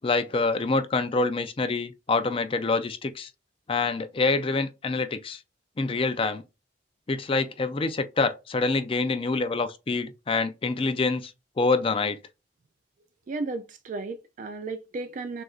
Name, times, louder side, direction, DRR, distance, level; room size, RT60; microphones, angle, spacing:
voice 1, 0.0-3.3 3.7-5.4 5.8-6.4 7.1-11.3 11.6-12.2, left 3 dB, 30° left, 0.4 m, -26 dB
voice 2, 13.3-15.4, right 3 dB, 40° right, 0.3 m, -34 dB
6.2 x 2.5 x 2.4 m
head